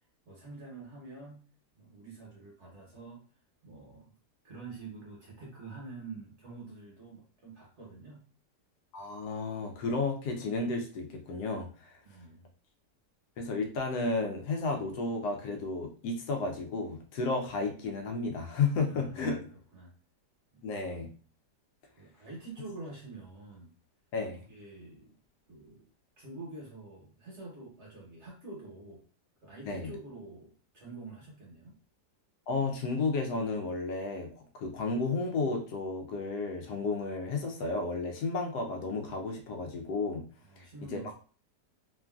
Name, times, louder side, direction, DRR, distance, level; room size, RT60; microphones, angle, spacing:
voice 1, 0.2-1.4 1.7-3.2 3.6-4.1 4.4-8.2 12.0-12.5 18.8-19.4 19.7-19.9 20.5-20.7 22.0-23.7 24.3-25.2 25.5-25.9 26.2-29.0 29.4-31.7 40.5-41.1, right 3 dB, 50° right, -3 dB, 1.0 m, -47 dB
voice 2, 8.9-12.0 13.4-19.5 20.6-21.1 24.1-24.4 29.7-29.9 32.5-34.3 34.5-40.2 40.6-40.7 40.9-41.0, left 3 dB, 75° left, 3 dB, 1.1 m, -32 dB
3.0 x 2.5 x 2.3 m, 0.39 s
omnidirectional pair, 1.8 m